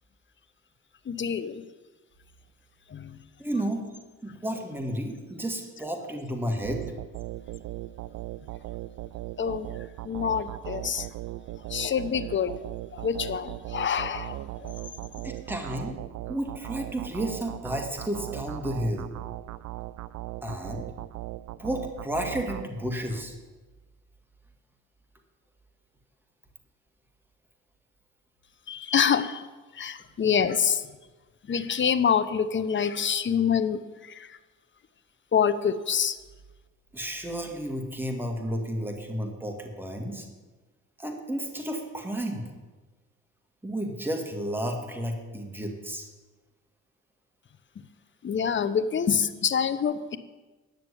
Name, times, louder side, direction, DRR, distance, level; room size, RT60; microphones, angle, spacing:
voice 1, 1.1-1.6 2.9-3.2 9.4-9.7 10.0-11.1 11.7-12.5 12.9-14.7 28.7-29.5 29.8-30.8 31.5-34.3 35.3-36.2 48.2-50.2, left 7 dB, 40° left, 12 dB, 0.8 m, -26 dB
voice 2, 3.4-3.8 4.2-6.8 15.2-16.0 16.3-19.1 20.4-20.9 21.6-23.3 36.9-40.3 41.0-42.4 43.6-46.1, equal, 5° right, 3 dB, 2.0 m, -32 dB
sound 1, 6.6-23.3, right 15 dB, 65° right, 0.5 m, -38 dB
10.5 x 6.7 x 8.4 m, 1.3 s
cardioid pair, 90°, 30 cm